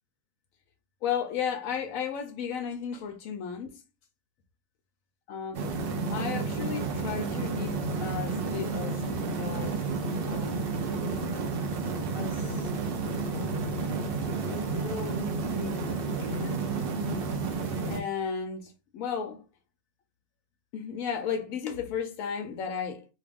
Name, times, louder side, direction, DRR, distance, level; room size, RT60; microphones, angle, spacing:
voice 1, 1.0-3.8 5.3-5.6 6.1-10.6 11.1-11.3 11.8-12.7 13.3-13.8 14.5-16.6 17.9-19.4 20.7-23.1, left 7 dB, 90° left, 1.0 m, -35 dB
sound 1, 5.5-18.0, right 4 dB, 55° right, 0.8 m, -31 dB
2.8 x 2.4 x 3.3 m
omnidirectional pair, 1.4 m